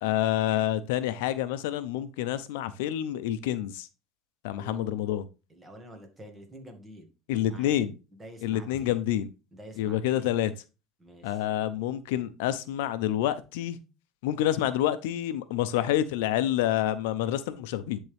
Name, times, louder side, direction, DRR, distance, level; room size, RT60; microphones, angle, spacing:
voice 1, 0.0-3.9 4.4-5.3 7.3-8.0 8.4-9.3 9.8-10.5 11.2-13.8 14.2-18.0, left 12 dB, 90° left, 0.6 m, -28 dB
voice 2, 4.6-5.0 5.5-7.1 7.4-7.8 8.2-9.0 9.5-10.3 11.0-11.4, right 1 dB, 20° right, 1.8 m, -47 dB
10.5 x 3.6 x 3.4 m
supercardioid pair, 125°, 0 cm